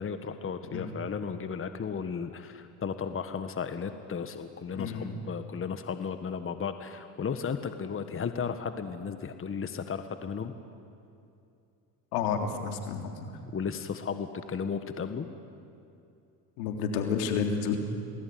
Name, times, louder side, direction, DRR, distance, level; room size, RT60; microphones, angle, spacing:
voice 1, 0.0-10.5 13.5-15.3, left 6 dB, 25° left, 9 dB, 1.5 m, -34 dB
voice 2, 4.8-5.2 12.1-13.3 16.6-17.8, left 6 dB, 80° left, 4 dB, 3.5 m, -30 dB
28.5 x 20.0 x 9.6 m, 2.5 s
supercardioid pair, 85°, 47 cm